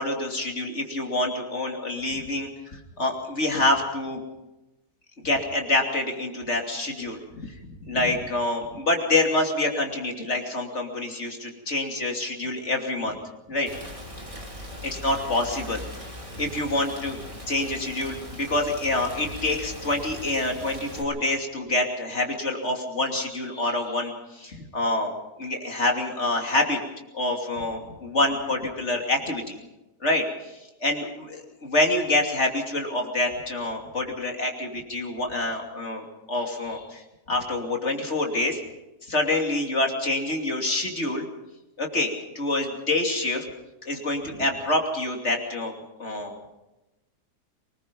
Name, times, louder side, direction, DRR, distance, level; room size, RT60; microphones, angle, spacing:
voice 1, 0.0-4.2 5.2-7.5 7.8-13.2 13.5-13.7 14.8-15.8 16.3-17.2 17.5-25.1 25.4-26.8 27.1-29.6 30.0-30.5 30.8-37.0 37.3-38.6 39.1-41.3 41.8-42.1 42.3-43.4 43.9-45.7 46.0-46.3, left 2 dB, 45° left, 2 dB, 3.2 m, -26 dB
Rain, 13.7-21.0, left 1 dB, 20° right, 3.1 m, -39 dB
24.0 x 20.0 x 5.4 m, 1.0 s
omnidirectional pair, 1.7 m